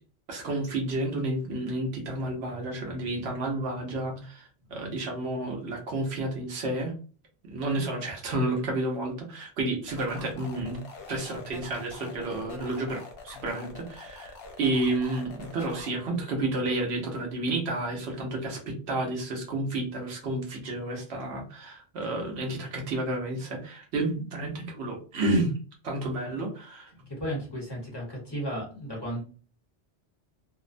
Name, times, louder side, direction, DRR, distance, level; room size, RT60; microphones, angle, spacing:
voice 1, 0.3-6.9 7.5-25.5 25.8-26.9, right 2 dB, 90° right, 1 dB, 1.0 m, -31 dB
sound 1, 9.9-15.9, left 4 dB, 70° left, 0.8 m, -45 dB
voice 2, 27.1-29.2, equal, 25° left, -4 dB, 0.9 m, -34 dB
2.6 x 2.0 x 2.5 m, 0.38 s
omnidirectional pair, 1.1 m